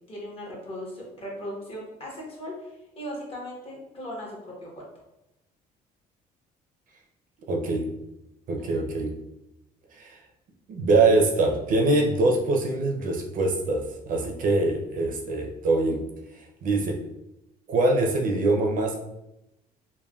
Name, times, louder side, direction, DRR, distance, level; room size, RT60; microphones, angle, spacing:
voice 1, 0.1-4.9 8.6-8.7, equal, 35° left, -3 dB, 1.0 m, -38 dB
voice 2, 7.5-7.9 8.5-9.1 10.0-10.2 10.7-13.8 14.1-16.0 16.6-17.0 17.7-19.0, right 2 dB, 55° right, 1 dB, 0.5 m, -23 dB
3.3 x 2.2 x 2.3 m, 0.89 s
cardioid pair, 110°, 17 cm